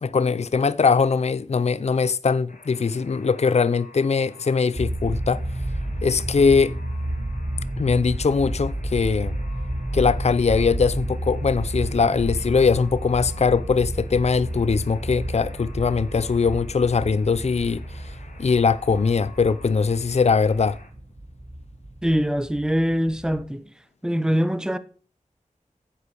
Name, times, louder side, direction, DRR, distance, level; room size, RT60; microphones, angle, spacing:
voice 1, 0.0-5.4 6.0-6.7 7.8-9.4 9.9-17.8 18.4-20.8, left 5 dB, 55° left, 0.5 m, -21 dB
Alarm, 2.5-20.9, left 3 dB, 85° left, 3.0 m, -50 dB
sound 1, 4.7-23.4, right 1 dB, 40° right, 2.6 m, -31 dB
voice 2, 22.0-23.7 24.0-24.8, equal, 5° right, 1.0 m, -23 dB
9.7 x 8.3 x 6.4 m
wide cardioid pair, 75°, 14 cm